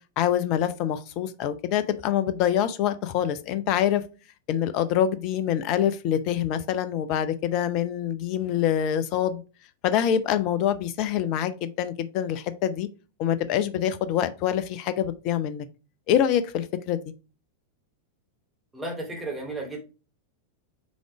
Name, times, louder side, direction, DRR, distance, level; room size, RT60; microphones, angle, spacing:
voice 1, 0.2-4.0 4.5-9.4 9.8-12.9 13.2-15.7 16.1-17.0, left 10 dB, 40° left, 12 dB, 0.6 m, -25 dB
voice 2, 18.7-19.8, right 2 dB, 10° right, -1 dB, 2.5 m, -33 dB
5.2 x 3.8 x 4.8 m, 0.32 s
figure-of-eight pair, 90°, 0 cm